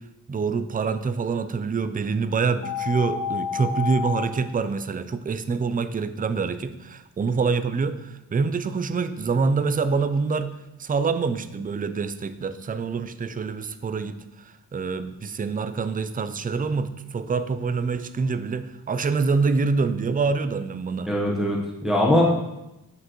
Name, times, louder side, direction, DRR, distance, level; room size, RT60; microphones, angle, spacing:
voice 1, 0.3-10.5 10.8-14.2 14.7-21.1, right 4 dB, 25° right, 12 dB, 0.4 m, -26 dB
sound 1, 2.6-4.2, left 7 dB, 20° left, 1.0 m, -29 dB
voice 2, 21.1-22.2, left 1 dB, ahead, -3 dB, 1.1 m, -21 dB
7.3 x 6.5 x 3.1 m, 0.95 s
wide cardioid pair, 90°, 37 cm